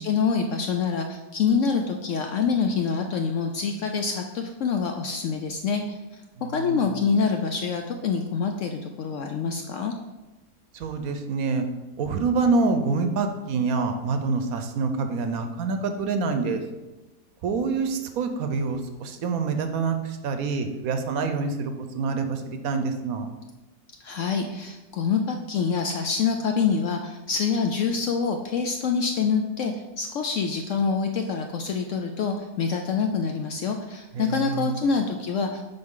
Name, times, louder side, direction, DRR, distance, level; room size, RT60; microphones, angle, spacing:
voice 1, 0.0-5.8 6.5-9.9 24.0-35.7, left 5 dB, 70° left, 4 dB, 0.7 m, -26 dB
voice 2, 6.4-7.0 10.7-11.7 12.0-16.6 17.4-23.3 34.1-34.8, right 4 dB, 70° right, 7 dB, 1.1 m, -26 dB
7.8 x 5.3 x 3.7 m, 1.1 s
omnidirectional pair, 1.7 m